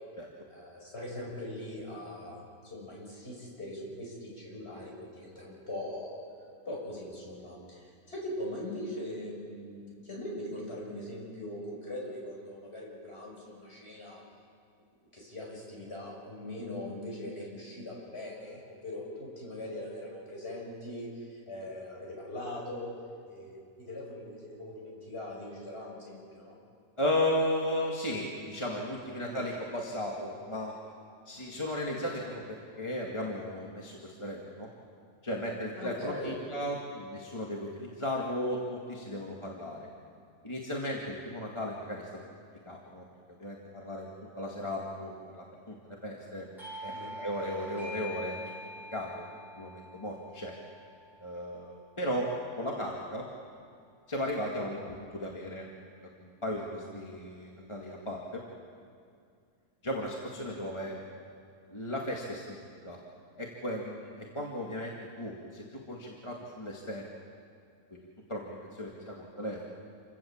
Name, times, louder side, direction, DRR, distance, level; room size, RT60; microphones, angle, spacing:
voice 1, 0.5-6.2 6.6-14.2 15.1-22.9 23.3-26.6 29.2-29.4 35.8-36.3 46.9-47.1, left 1 dB, 45° left, -3 dB, 6.3 m, -41 dB
voice 2, 27.0-30.7 31.3-34.7 35.2-39.9 40.4-42.1 42.7-43.0 43.4-44.1 44.4-46.4 46.8-48.4 48.9-49.2 49.6-50.5 51.2-52.3 52.6-53.2 54.1-55.7 56.2-58.4 59.8-61.0 61.7-62.6 62.8-63.0 63.4-67.1 67.9-68.0 68.3-69.6, left 1 dB, 20° left, -2 dB, 2.1 m, -35 dB
Doorbell, 46.6-51.9, left 1 dB, ahead, 7.5 m, -45 dB
28.0 x 17.0 x 7.3 m, 2.3 s
omnidirectional pair, 1.6 m